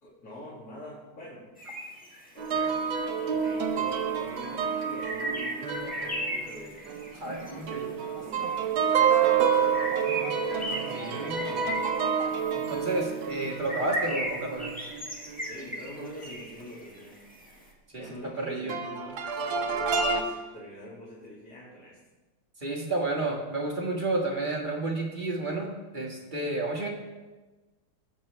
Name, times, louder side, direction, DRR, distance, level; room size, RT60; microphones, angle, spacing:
voice 1, 0.0-1.5 2.3-2.8 3.2-6.9 7.2-11.9 15.4-17.2 17.9-22.0, left 1 dB, 45° left, -8 dB, 2.8 m, -45 dB
sound 1, 1.6-2.6 3.5-3.6 3.9-7.5 8.3-8.5 8.8-17.5, equal, 5° left, 1.2 m, -37 dB
sound 2, 2.4-7.4 7.7-15.4 16.0-16.1 18.7-20.2, right 6 dB, 70° right, 1.7 m, -28 dB
sound 3, 6.9-11.9, right 4 dB, 50° right, 1.5 m, -46 dB
voice 2, 7.1-7.9 10.1-10.2 10.7-11.4 12.5-14.7 17.9-18.0 18.4-18.8 22.6-26.9, right 2 dB, 25° right, 0 dB, 1.4 m, -31 dB
20.5 x 7.0 x 3.2 m, 1.2 s
omnidirectional pair, 2.3 m